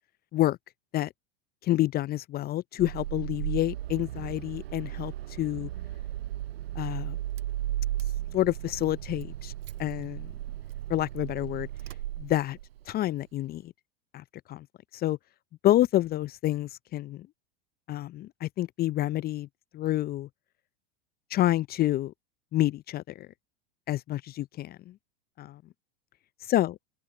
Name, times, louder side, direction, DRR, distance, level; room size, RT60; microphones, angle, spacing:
voice 1, 1.6-5.7 6.8-7.2 8.3-9.5 9.8-10.3 10.9-11.7 12.2-12.6 12.9-13.7 14.1-14.7 14.9-15.2 15.6-17.3 17.9-19.5 19.7-20.3 21.3-22.1 22.5-23.3 23.9-24.9 25.4-25.6 26.5-26.7, left 14 dB, 30° left, 0.6 m, -28 dB
Car / Engine starting, 2.8-12.8, right 13 dB, 75° right, 0.7 m, -35 dB
open air
hypercardioid pair, 90°, 30 cm